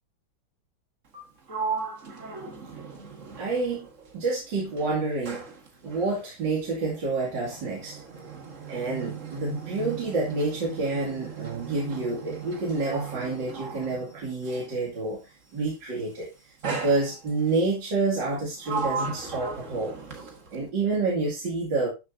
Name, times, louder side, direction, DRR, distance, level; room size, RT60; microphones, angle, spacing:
Sliding door, 1.1-4.4 4.7-14.8 15.7-16.0 16.6-17.6 18.1-20.7, right 5 dB, 40° right, 1.9 m, -37 dB
voice 1, 3.4-3.9 4.1-5.4 5.8-8.0 8.7-21.9, right 3 dB, 60° right, 3.1 m, -28 dB
12.5 x 7.0 x 2.7 m
omnidirectional pair, 2.2 m